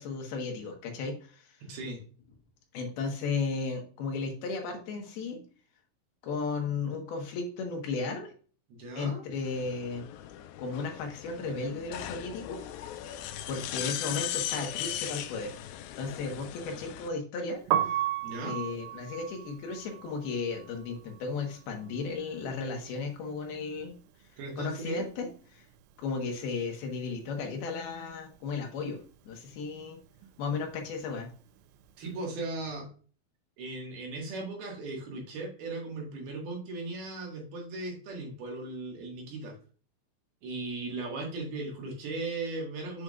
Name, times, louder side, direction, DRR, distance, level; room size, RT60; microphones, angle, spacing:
voice 1, 0.0-1.5 2.7-5.4 6.2-8.3 9.0-10.1 10.6-13.0 13.5-15.6 16.0-18.0 18.4-24.0 24.6-25.6 26.0-30.0 30.4-31.3, left 4 dB, 65° left, 3 dB, 2.7 m, -35 dB
voice 2, 1.6-2.0 8.7-9.2 18.2-18.6 24.4-25.0 32.0-32.9 33.6-39.6 40.4-43.0, right 2 dB, 60° right, -1 dB, 3.3 m, -37 dB
sound 1, 9.5-17.1, left 12 dB, 90° left, 2.4 m, -38 dB
Piano, 17.6-23.5 23.8-25.4 25.6-32.1, right 11 dB, 90° right, 2.5 m, -36 dB
7.9 x 6.2 x 2.4 m, 0.40 s
omnidirectional pair, 5.6 m